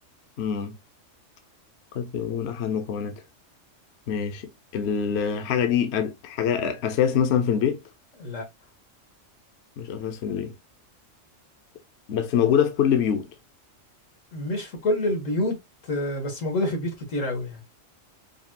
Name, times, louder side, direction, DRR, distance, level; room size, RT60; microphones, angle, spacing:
voice 1, 0.4-0.8 1.9-3.1 4.1-7.8 9.8-10.5 12.1-13.3, left 8 dB, 65° left, 0.9 m, -25 dB
voice 2, 14.3-15.6 15.8-17.6, left 1 dB, 85° left, 1.9 m, -27 dB
5.1 x 2.4 x 2.7 m
omnidirectional pair, 1.3 m